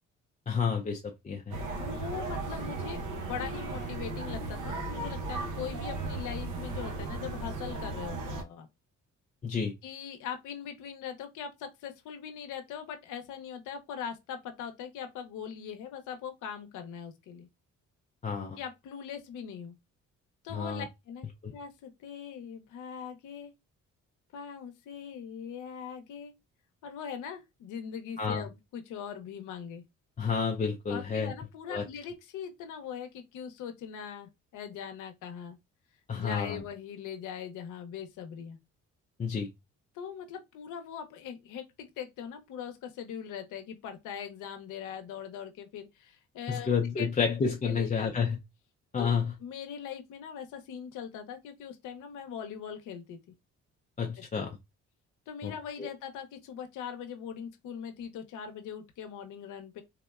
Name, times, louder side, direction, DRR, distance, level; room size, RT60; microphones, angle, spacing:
voice 1, 0.5-1.6 9.4-9.7 18.2-18.6 20.5-20.9 21.4-21.5 28.2-28.4 30.2-31.3 31.7-31.8 36.1-36.6 39.2-39.5 46.5-48.4 48.9-49.3 54.0-54.5 55.4-55.5 55.8-55.9, left 6 dB, 25° left, 0.4 m, -30 dB
sound 1, 1.5-8.4, right 3 dB, 85° right, 0.8 m, -36 dB
voice 2, 1.6-8.7 9.8-17.5 18.6-19.7 20.4-23.5 24.3-26.3 26.8-29.8 30.9-35.6 36.1-38.6 39.9-46.7 47.0-47.3 47.6-48.2 49.0-53.2 54.0-54.5 55.3-59.8, left 8 dB, 85° left, 0.6 m, -41 dB
3.5 x 2.1 x 2.3 m
cardioid pair, 90°, 30 cm